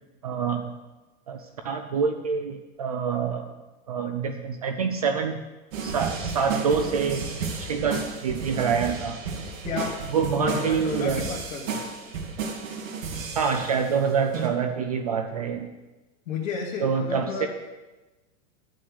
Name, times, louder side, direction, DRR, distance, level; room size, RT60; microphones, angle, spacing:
voice 1, 0.2-0.7 1.3-3.5 3.9-5.4 5.8-7.2 7.6-9.2 10.1-11.2 13.4-15.7 16.8-17.5, right 6 dB, 30° right, 6 dB, 0.4 m, -26 dB
sound 1, 5.7-13.9 14.3-14.5, right 5 dB, 80° right, 2.3 m, -32 dB
voice 2, 9.7-10.0 10.4-11.8 16.3-17.5, left 5 dB, 85° left, -3 dB, 2.0 m, -32 dB
11.0 x 6.3 x 8.1 m, 1.1 s
supercardioid pair, 180°, 39 cm